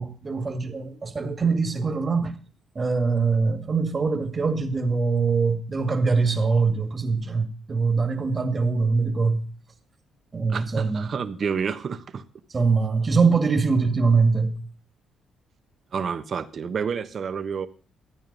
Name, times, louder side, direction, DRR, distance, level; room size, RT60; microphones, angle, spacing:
voice 1, 0.0-2.3 2.8-9.4 10.3-11.1 12.5-14.6, right 4 dB, 30° right, 2.0 m, -23 dB
voice 2, 10.5-12.2 15.9-17.7, right 6 dB, 50° right, 1.2 m, -29 dB
13.5 x 9.0 x 5.4 m
cardioid pair, 90°, 0 cm